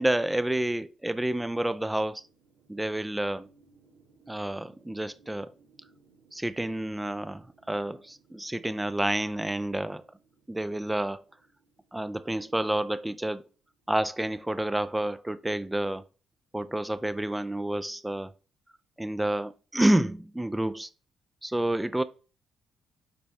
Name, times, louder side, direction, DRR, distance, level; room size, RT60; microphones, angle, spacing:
voice 1, 0.0-2.2 2.7-3.5 4.3-5.5 6.3-10.0 10.5-11.2 11.9-13.4 13.9-16.0 16.5-18.3 19.0-20.9 21.4-22.0, right 1 dB, 10° right, 0.4 m, -29 dB
sound 1, 1.9-14.1, right 4 dB, 85° right, 3.0 m, -64 dB
10.0 x 4.1 x 3.5 m
cardioid pair, 90°, 0 cm